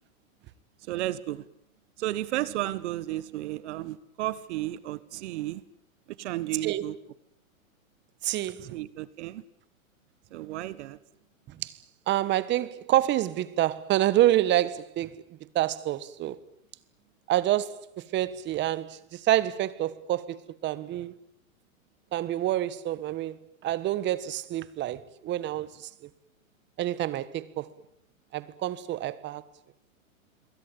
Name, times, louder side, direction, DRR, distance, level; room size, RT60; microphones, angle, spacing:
voice 1, 0.9-1.4 2.0-5.6 6.2-7.0 8.7-9.4 10.3-11.0, right 15 dB, 55° right, 1.5 m, -33 dB
voice 2, 8.2-8.7 11.6-11.7 12.1-15.2 15.5-16.4 17.3-21.1 22.1-23.4 23.6-25.9 26.8-27.7 28.3-29.4, right 13 dB, 25° right, 1.4 m, -27 dB
26.5 x 22.5 x 8.8 m
hypercardioid pair, 135°, 42 cm